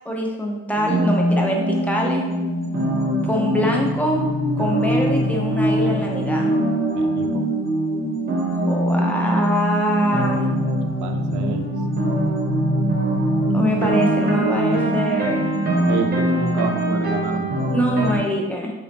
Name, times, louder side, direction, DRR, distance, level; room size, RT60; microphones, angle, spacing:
voice 1, 0.0-2.3 3.2-4.2 4.6-6.5 8.7-10.5 13.5-15.5 17.7-18.7, equal, 5° left, -1 dB, 0.6 m, -23 dB
sound 1, 0.8-18.2, right 1 dB, 30° right, 0.8 m, -22 dB
voice 2, 7.0-7.3 11.0-11.7 15.9-17.6, right 6 dB, 75° right, 5 dB, 0.5 m, -28 dB
2.9 x 2.7 x 3.4 m, 1.1 s
cardioid pair, 90°, 30 cm